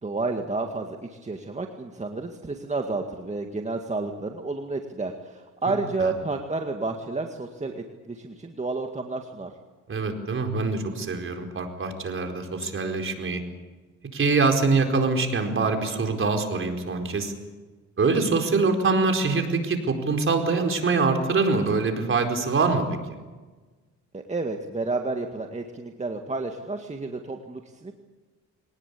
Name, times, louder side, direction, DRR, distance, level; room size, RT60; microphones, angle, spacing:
voice 1, 0.0-9.5 24.1-27.9, right 3 dB, 25° right, 4 dB, 2.0 m, -31 dB
voice 2, 9.9-13.4 14.1-17.3 18.0-23.0, right 4 dB, 45° right, 5 dB, 4.6 m, -24 dB
23.0 x 19.5 x 8.6 m, 1.3 s
cardioid pair, 90°, 30 cm